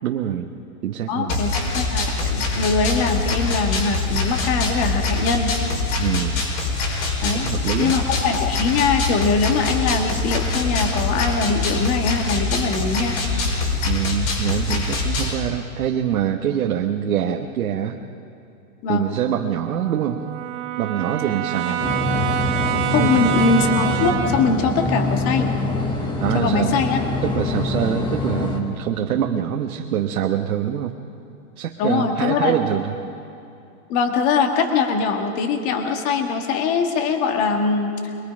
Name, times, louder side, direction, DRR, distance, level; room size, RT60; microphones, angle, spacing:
voice 1, 0.0-0.5 0.8-1.4 6.0-6.4 7.3-8.0 13.8-18.0 18.9-20.2 20.8-21.8 23.0-23.3 26.2-26.7 27.2-30.9 31.6-33.0, right 10 dB, 80° right, 2 dB, 1.4 m, -24 dB
voice 2, 1.1-5.5 7.2-7.5 7.8-13.2 18.8-19.1 22.9-25.5 26.3-27.0 31.8-32.6 33.9-37.9, left 4 dB, 30° left, 4 dB, 1.8 m, -22 dB
sound 1, 1.3-15.3, left 3 dB, 75° left, 5.5 m, -24 dB
Brass instrument, 18.9-24.5, right 12 dB, 50° right, 1.9 m, -27 dB
sound 2, 21.8-28.6, left 2 dB, 10° left, 1.2 m, -24 dB
23.5 x 21.5 x 5.2 m, 2.7 s
supercardioid pair, 160°, 42 cm